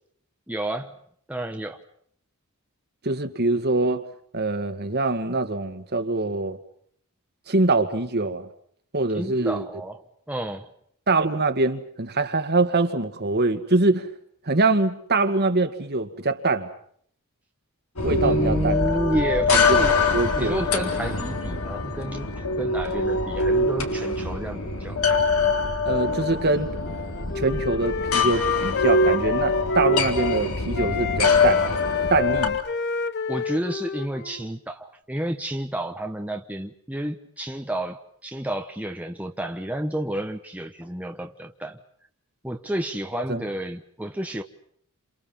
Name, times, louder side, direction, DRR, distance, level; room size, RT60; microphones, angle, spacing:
voice 1, 0.5-0.9 1.3-1.8 9.1-10.7 18.2-20.0 20.3-25.0 33.3-41.8 42.4-44.4, right 1 dB, 5° right, 1.2 m, -30 dB
voice 2, 3.0-4.0 4.3-6.6 7.5-8.5 8.9-9.6 11.1-14.1 14.5-16.7 18.0-18.8 19.5-19.9 20.1-20.6 25.9-26.7 27.3-31.7 32.1-32.6 43.3-43.4, right 3 dB, 45° right, 2.0 m, -24 dB
sound 1, 18.0-32.5, left 3 dB, 75° left, 3.6 m, -24 dB
Wind instrument woodwind instrument, 26.8-30.4 30.7-34.5, left 6 dB, 50° left, 1.1 m, -29 dB
29.5 x 28.0 x 5.7 m
head